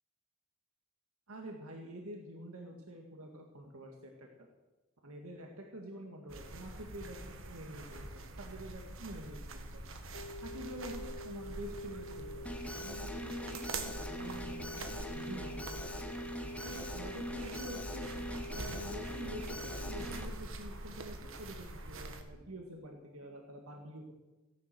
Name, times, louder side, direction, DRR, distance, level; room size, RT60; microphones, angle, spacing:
voice 1, 1.3-4.5 5.0-9.8 10.4-12.3 12.8-15.9 16.6-18.1 18.5-24.0, equal, 85° right, 2 dB, 1.9 m, -47 dB
sound 1, 6.3-22.2, right 2 dB, 65° right, 1.7 m, -45 dB
sound 2, 10.1-20.1, equal, 70° left, 1.4 m, -47 dB
Alarm, 12.5-20.3, left 1 dB, 5° left, 1.1 m, -43 dB
15.5 x 11.0 x 7.7 m, 1.1 s
head